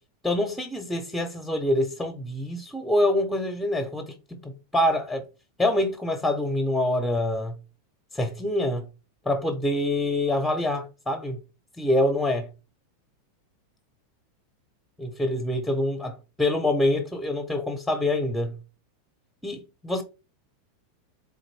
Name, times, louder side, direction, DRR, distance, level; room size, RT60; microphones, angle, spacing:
voice 1, 0.2-4.1 4.4-5.2 5.6-7.6 8.1-8.9 9.3-11.4 11.8-12.5 15.0-18.5 19.4-20.0, left 1 dB, 5° left, 0.7 m, -25 dB
3.6 x 2.5 x 3.2 m
hypercardioid pair, 90°, 0 cm